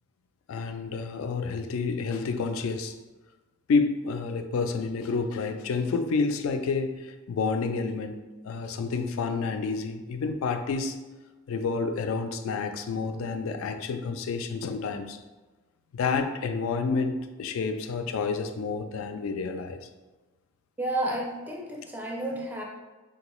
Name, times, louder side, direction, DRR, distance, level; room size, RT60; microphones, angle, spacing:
voice 1, 0.5-2.9 3.7-11.0 11.5-15.2 15.9-19.9, left 4 dB, 80° left, 7 dB, 0.3 m, -29 dB
voice 2, 20.8-22.6, right 1 dB, 10° right, -1 dB, 0.4 m, -31 dB
3.7 x 2.3 x 3.0 m, 1.2 s
head